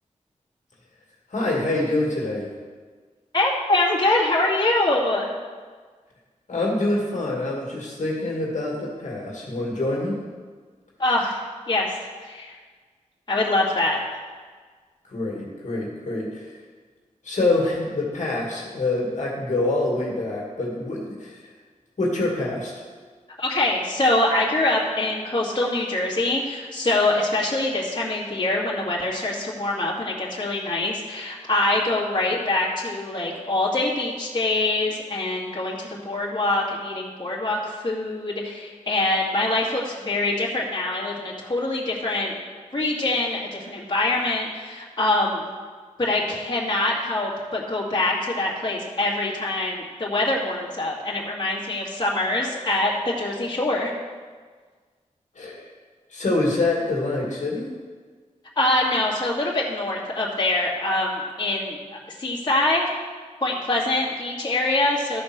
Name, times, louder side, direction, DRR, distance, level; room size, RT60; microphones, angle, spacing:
voice 1, 1.3-2.5 6.5-10.2 15.1-16.6 17.2-21.5 22.0-22.8 55.4-55.7 56.1-57.7, left 2 dB, 65° left, -3 dB, 2.1 m, -26 dB
voice 2, 3.3-5.3 11.0-11.4 11.7-12.0 12.2-12.5 13.3-14.2 23.4-42.3 42.7-45.4 46.0-53.9 58.6-61.8 62.2-62.9 63.4-65.2, left 2 dB, 30° left, -6 dB, 2.3 m, -24 dB
13.0 x 4.4 x 6.1 m, 1.5 s
wide cardioid pair, 80°, 13 cm